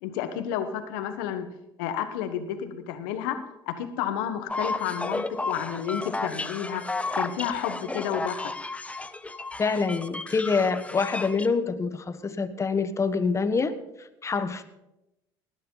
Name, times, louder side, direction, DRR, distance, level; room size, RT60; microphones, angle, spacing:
voice 1, 0.0-1.5 1.8-3.4 3.7-6.8 7.1-8.5, left 9 dB, 85° left, 9 dB, 1.4 m, -31 dB
sound 1, 4.5-11.5, left 2 dB, 10° left, 0.8 m, -33 dB
voice 2, 9.6-14.6, left 4 dB, 30° left, 10 dB, 1.3 m, -26 dB
19.5 x 9.9 x 4.0 m, 0.90 s
supercardioid pair, 85°, 10 cm